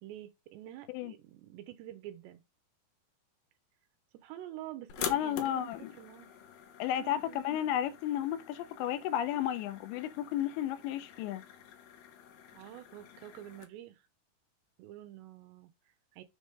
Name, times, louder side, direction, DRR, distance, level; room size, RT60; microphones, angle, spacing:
voice 1, 0.0-2.4 4.1-6.3 6.9-7.5 12.5-14.1 14.8-16.2, right 13 dB, 90° right, 3.0 m, -48 dB
sound 1, 4.9-13.6, left 9 dB, 70° left, 2.5 m, -46 dB
voice 2, 5.1-5.9 6.8-11.4, left 11 dB, 85° left, 2.9 m, -33 dB
7.2 x 3.7 x 5.1 m
omnidirectional pair, 5.0 m